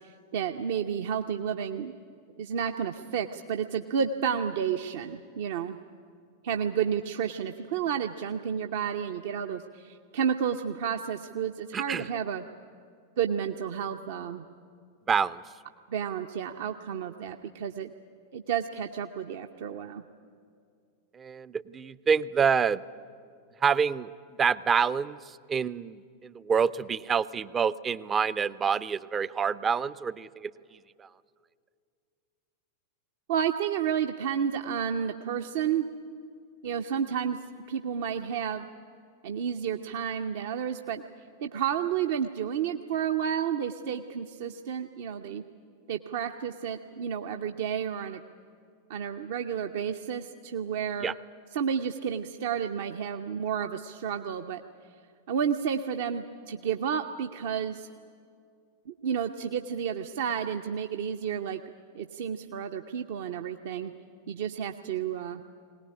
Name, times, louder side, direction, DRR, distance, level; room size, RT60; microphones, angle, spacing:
voice 1, 0.3-1.9 2.4-5.8 6.4-12.5 13.2-14.4 15.9-17.9 18.3-20.0 33.3-35.9 36.6-37.4 37.7-38.7 39.2-41.0 41.4-45.4 45.9-48.2 48.9-51.1 51.5-54.6 55.3-57.9 58.9-61.6 61.9-63.9 64.3-65.4, right 8 dB, 55° right, 5 dB, 0.7 m, -31 dB
voice 2, 11.7-12.1 15.1-15.4 21.2-22.8 23.6-24.1 24.4-25.2 25.5-30.5 51.0-51.1, right 6 dB, 20° right, 18 dB, 0.5 m, -27 dB
21.5 x 18.5 x 9.8 m, 2.3 s
figure-of-eight pair, 90°, 0 cm